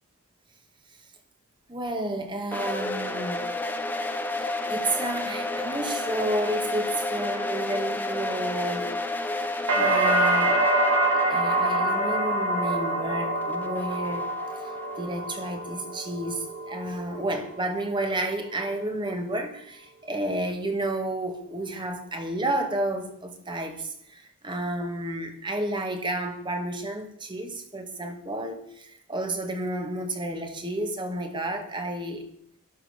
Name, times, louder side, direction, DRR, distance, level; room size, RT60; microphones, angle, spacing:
voice 1, 1.7-3.5 4.7-8.9 9.7-10.6 11.1-14.3 15.0-32.2, right 1 dB, 20° right, 2.1 m, -31 dB
sound 1, 2.5-15.4, left 2 dB, 10° left, 1.2 m, -32 dB
sound 2, 9.7-17.6 18.0-18.6, right 2 dB, 75° right, 5.3 m, -26 dB
12.0 x 12.0 x 6.7 m
head